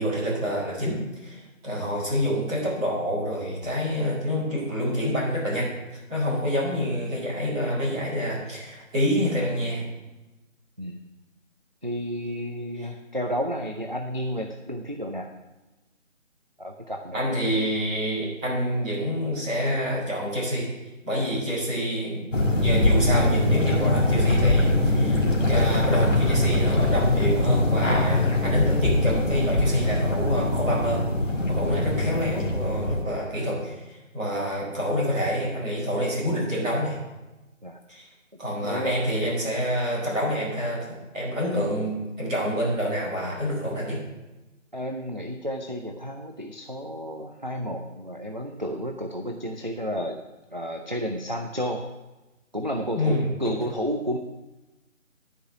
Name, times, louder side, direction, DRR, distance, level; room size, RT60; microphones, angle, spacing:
voice 1, 0.0-5.7 6.1-9.8 17.1-20.7 21.0-22.2 22.6-31.0 31.5-37.0 37.9-38.1 38.4-40.9 41.1-44.0 52.9-53.5, equal, 5° right, -14 dB, 1.9 m, -27 dB
voice 2, 11.8-15.3 16.6-17.3 21.2-21.4 31.6-31.8 37.6-37.8 38.6-39.0 44.7-50.2 50.5-51.8 52.5-54.2, equal, 40° right, 3 dB, 0.4 m, -31 dB
sound 1, 22.3-33.0, left 1 dB, 70° left, 2.0 m, -22 dB
11.0 x 5.0 x 6.0 m, 1.1 s
figure-of-eight pair, 160°, 39 cm